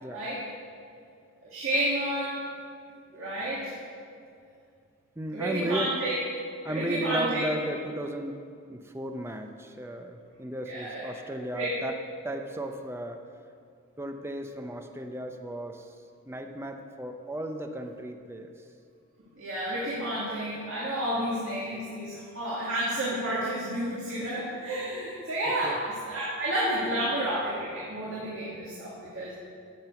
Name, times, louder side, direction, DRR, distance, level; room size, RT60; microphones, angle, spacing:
voice 1, 0.1-0.4 1.4-2.3 3.1-3.7 5.3-6.2 6.6-7.4 10.7-11.1 11.5-11.7 19.4-25.8 26.0-29.3, right 1 dB, 65° right, -7 dB, 2.3 m, -30 dB
voice 2, 5.2-6.0 6.6-8.4 8.7-12.0 12.2-13.2 14.0-16.0 16.3-18.7 25.6-25.8, right 1 dB, 10° right, 5 dB, 0.6 m, -35 dB
10.5 x 7.4 x 6.9 m, 2.3 s
head